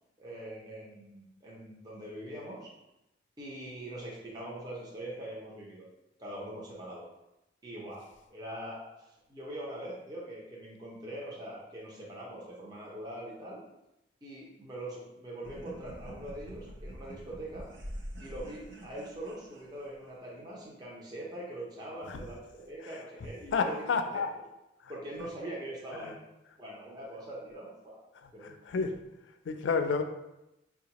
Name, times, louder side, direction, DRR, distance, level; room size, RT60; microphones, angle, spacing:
voice 1, 0.2-2.7 3.4-5.9 6.2-7.1 7.6-13.6 14.2-17.7 18.2-24.2 24.9-26.2 26.6-28.0 28.3-28.7, right 1 dB, 20° right, -5 dB, 0.6 m, -42 dB
sound 1, 15.4-20.2, equal, 75° right, 0.7 m, -45 dB
voice 2, 23.5-24.3 26.0-26.1 28.4-28.9 29.5-30.0, left 5 dB, 75° left, 7 dB, 0.4 m, -29 dB
4.8 x 2.3 x 2.9 m, 0.90 s
head